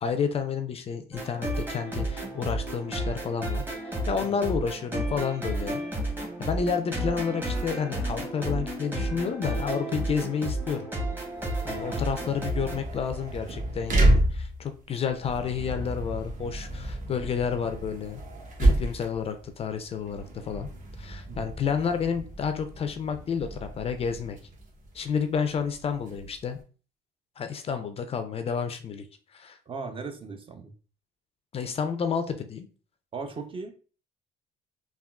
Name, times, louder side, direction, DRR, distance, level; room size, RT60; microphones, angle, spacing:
voice 1, 0.0-5.8 6.4-10.9 11.6-18.2 18.6-20.7 21.0-24.4 24.9-26.6 27.4-29.1 29.3-29.6 31.5-32.7, left 6 dB, 35° left, 8 dB, 0.4 m, -30 dB
sound 1, 1.1-12.8, right 1 dB, 10° right, 0.9 m, -32 dB
sound 2, 11.3-26.6, right 1 dB, 50° right, 0.9 m, -30 dB
voice 2, 29.7-30.7 33.1-33.8, right 4 dB, 30° right, 6 dB, 0.5 m, -37 dB
3.6 x 2.3 x 2.2 m, 0.38 s
cardioid pair, 110°, 17 cm